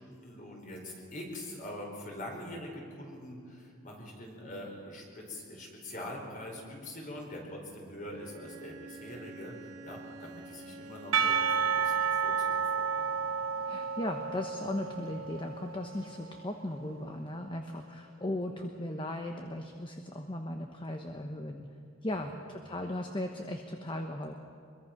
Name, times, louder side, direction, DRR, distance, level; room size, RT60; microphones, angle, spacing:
voice 1, 0.0-13.2 22.1-22.4, left 1 dB, 40° left, 0 dB, 4.8 m, -44 dB
Bowed string instrument, 8.1-11.9, right 3 dB, 60° right, 1.9 m, -49 dB
Percussion / Church bell, 11.1-16.4, right 6 dB, 80° right, 0.9 m, -31 dB
voice 2, 13.7-21.7 22.0-24.3, left 1 dB, 25° left, 4 dB, 1.0 m, -37 dB
24.0 x 22.0 x 5.9 m, 2.5 s
head